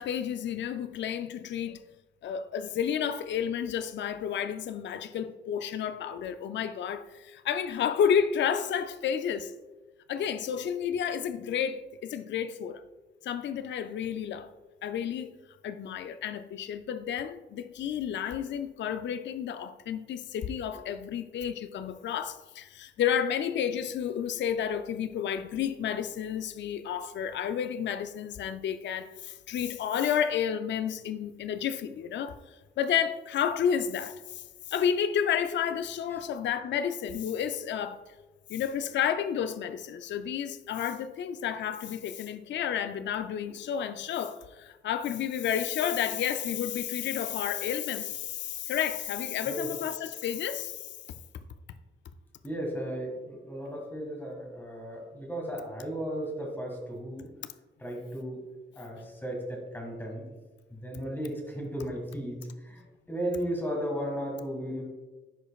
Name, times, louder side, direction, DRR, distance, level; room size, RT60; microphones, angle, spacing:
voice 1, 0.0-1.8 2.2-9.5 10.1-12.8 13.2-14.5 14.8-15.4 15.6-32.4 32.8-34.4 34.7-38.0 38.5-50.9, left 8 dB, 65° left, 0.4 m, -31 dB
voice 2, 52.4-57.3 57.8-58.4 58.7-60.3 60.7-64.8, equal, 10° left, 1.8 m, -35 dB
10.5 x 5.0 x 2.3 m
cardioid pair, 95°, 20 cm